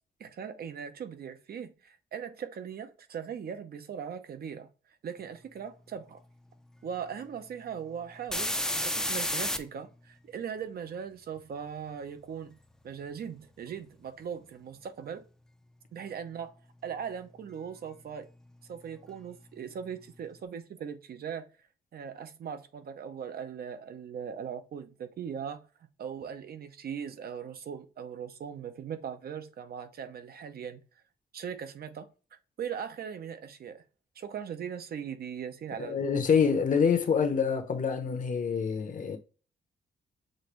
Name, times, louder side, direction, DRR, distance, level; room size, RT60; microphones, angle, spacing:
voice 1, 0.2-4.7 5.0-6.2 6.8-12.6 12.8-15.2 15.9-18.3 18.7-21.5 21.9-25.7 26.0-30.8 31.3-32.1 32.6-33.8 34.2-36.2, right 7 dB, 65° right, 0.7 m, -39 dB
sound 1, 7.2-7.3 7.7-9.6 17.9-18.0 18.4-20.1, left 1 dB, 5° left, 0.5 m, -32 dB
voice 2, 35.8-39.2, left 6 dB, 50° left, 0.9 m, -26 dB
6.4 x 2.6 x 3.1 m
wide cardioid pair, 125°, 17 cm